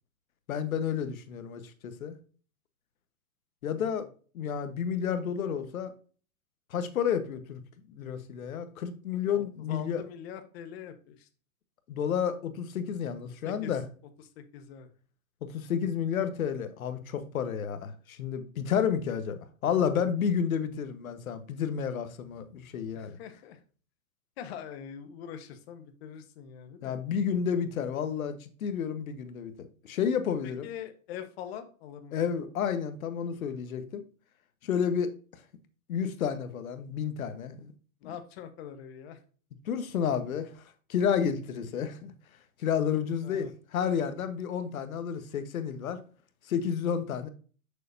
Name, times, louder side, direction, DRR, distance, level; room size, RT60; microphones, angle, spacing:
voice 1, 0.5-2.2 3.6-4.0 4.3-5.9 6.7-7.6 7.9-10.0 11.9-13.8 15.4-23.2 26.8-30.7 32.1-34.0 34.6-35.1 35.9-37.7 39.7-40.6 40.9-42.1 42.6-43.5 43.7-46.0 46.5-47.3, left 7 dB, 75° left, 1.3 m, -31 dB
voice 2, 9.3-11.3 13.4-13.7 14.2-14.9 22.9-23.6 24.4-27.0 30.4-32.2 38.0-39.2 43.2-43.5, left 8 dB, 45° left, 1.2 m, -43 dB
6.7 x 6.5 x 2.7 m
hypercardioid pair, 140°, 42 cm